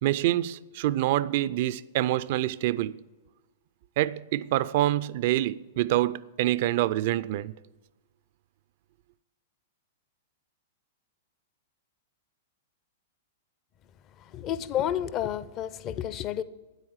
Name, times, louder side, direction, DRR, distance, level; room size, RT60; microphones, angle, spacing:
voice 1, 0.0-3.0 4.0-7.6, right 14 dB, 55° right, 0.3 m, -26 dB
voice 2, 14.2-16.4, left 10 dB, 35° left, 0.5 m, -30 dB
9.1 x 8.2 x 7.3 m
hypercardioid pair, 110°, 0 cm